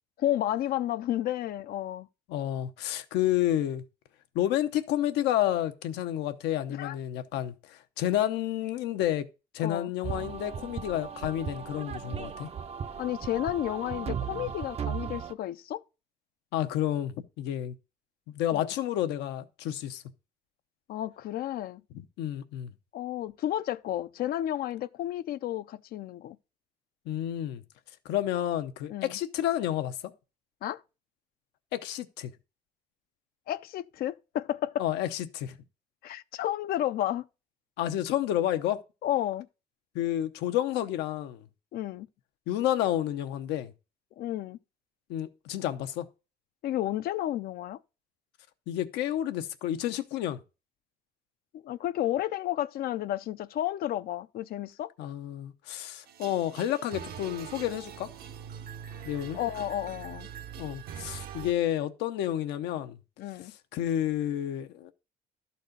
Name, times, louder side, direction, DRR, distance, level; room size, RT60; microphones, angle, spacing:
voice 1, 0.2-2.1 6.7-7.0 9.6-9.9 13.0-15.8 18.5-18.7 20.9-21.8 22.9-26.4 28.9-29.2 30.6-30.8 33.5-34.9 36.0-37.2 39.0-39.5 41.7-42.1 44.2-44.6 46.6-47.8 51.5-54.9 59.3-60.3 63.2-63.5, left 12 dB, 60° left, 0.5 m, -32 dB
voice 2, 2.3-3.8 4.3-9.3 9.5-12.5 16.5-17.7 18.3-20.0 21.9-22.7 27.1-27.6 28.0-30.1 31.7-32.3 34.8-35.6 37.8-38.8 39.9-41.4 42.5-43.7 45.1-46.1 48.7-50.4 55.0-58.1 59.0-59.4 60.6-63.0 63.4-64.9, left 12 dB, 90° left, 0.8 m, -30 dB
sound 1, 10.0-15.3, right 7 dB, 40° right, 0.6 m, -36 dB
sound 2, 56.1-61.5, right 8 dB, 65° right, 0.9 m, -43 dB
12.0 x 4.2 x 5.2 m
cardioid pair, 110°, 17 cm